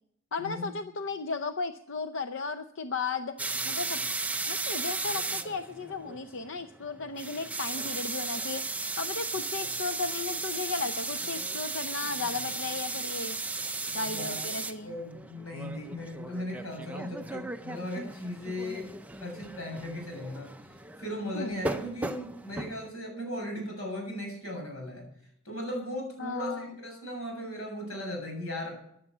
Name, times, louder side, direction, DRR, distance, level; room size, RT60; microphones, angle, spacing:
voice 1, 0.3-3.3 3.6-4.0 4.5-8.6 9.0-13.4 13.9-15.0 21.3-21.6 26.2-26.7, left 4 dB, 60° left, 9 dB, 0.7 m, -35 dB
sound 1, 3.4-22.9, right 3 dB, 5° right, 0.5 m, -36 dB
voice 2, 13.9-14.4 14.8-20.5 21.0-25.1 25.4-28.7, left 1 dB, 90° left, 2 dB, 7.4 m, -37 dB
15.5 x 11.0 x 6.1 m, 0.71 s
head